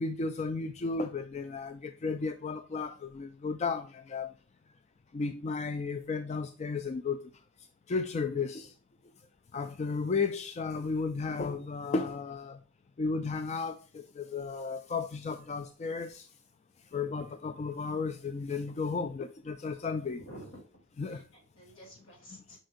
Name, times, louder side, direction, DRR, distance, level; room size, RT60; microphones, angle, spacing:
voice 1, 0.0-4.3 5.1-7.2 7.9-8.7 9.5-12.6 13.0-16.3 16.9-20.2 21.0-21.2, left 4 dB, 35° left, 0.3 m, -34 dB
voice 2, 20.0-22.6, equal, 70° left, 2.8 m, -51 dB
7.7 x 5.2 x 2.5 m
head